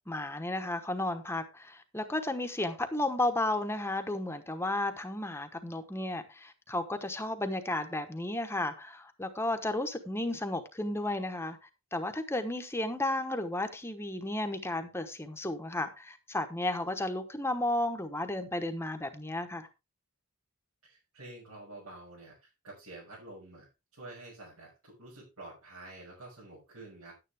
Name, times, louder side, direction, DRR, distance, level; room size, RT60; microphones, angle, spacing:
voice 1, 0.1-11.6 11.9-19.7, left 1 dB, 10° left, 1.1 m, -33 dB
voice 2, 20.8-27.1, right 2 dB, 85° right, 6.3 m, -49 dB
11.0 x 9.6 x 3.5 m
head